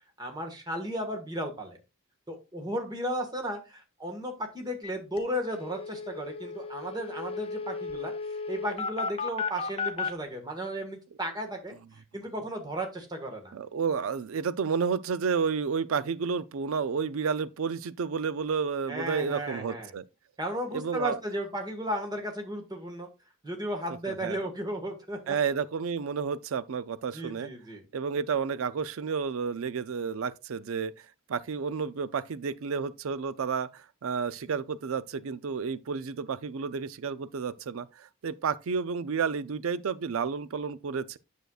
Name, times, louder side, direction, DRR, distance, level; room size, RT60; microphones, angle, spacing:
voice 1, 0.2-1.8 2.3-8.1 8.5-11.7 12.1-13.5 18.9-19.9 20.4-23.1 23.4-25.4 27.1-27.8, equal, 20° right, 1.6 m, -34 dB
sound 1, 4.8-4.9 5.2-5.3 5.5-10.1, left 4 dB, 25° left, 0.7 m, -34 dB
voice 2, 13.5-20.0 20.7-21.2 24.1-24.4 25.3-27.5 27.9-30.9 31.3-41.2, right 5 dB, 70° right, 0.4 m, -31 dB
9.1 x 6.4 x 2.4 m
head